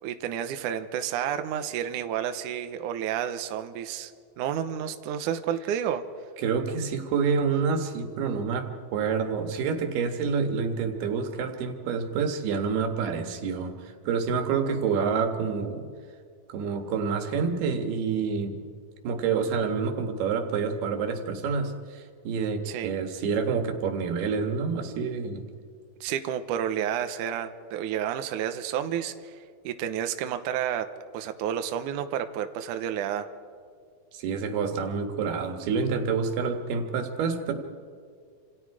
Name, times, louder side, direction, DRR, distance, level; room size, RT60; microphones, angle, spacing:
voice 1, 0.0-6.0 22.7-22.9 26.0-29.4 29.6-33.3, right 9 dB, 70° right, 8 dB, 2.1 m, -30 dB
voice 2, 6.4-15.9 16.5-18.6 19.0-25.4 34.1-37.5, right 5 dB, 85° right, 5 dB, 3.7 m, -28 dB
28.5 x 27.0 x 4.9 m, 2.1 s
omnidirectional pair, 4.4 m